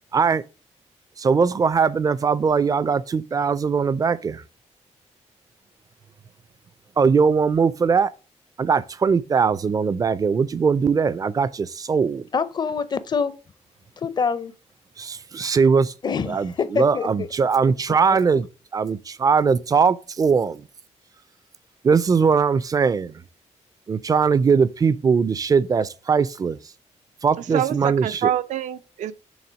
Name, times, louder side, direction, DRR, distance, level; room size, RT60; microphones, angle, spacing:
voice 1, 0.1-0.4 1.2-4.4 7.0-8.1 8.6-12.2 15.0-15.9 16.3-18.5 18.7-20.6 21.8-23.1 23.9-26.6 27.2-28.3, right 5 dB, 30° right, 0.4 m, -20 dB
voice 2, 12.3-13.3 14.0-14.5 16.0-17.3, left 5 dB, 35° left, 0.5 m, -25 dB
voice 3, 27.4-29.1, right 10 dB, 85° right, 0.5 m, -26 dB
7.1 x 3.4 x 6.1 m
wide cardioid pair, 140°, 12 cm